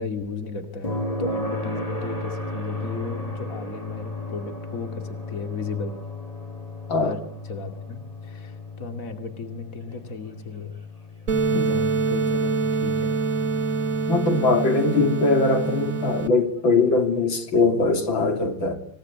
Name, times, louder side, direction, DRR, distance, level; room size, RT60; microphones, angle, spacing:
voice 1, 0.0-6.0 6.9-7.2 7.5-10.8 11.5-13.2, left 4 dB, 45° left, 2.9 m, -35 dB
sound 1, 0.8-14.7 16.9-17.0, left 1 dB, 20° left, 3.5 m, -34 dB
sound 2, 11.3-16.3, right 4 dB, 45° right, 1.9 m, -25 dB
voice 2, 14.1-18.8, left 3 dB, 90° left, 3.8 m, -21 dB
27.0 x 18.0 x 9.6 m
omnidirectional pair, 2.1 m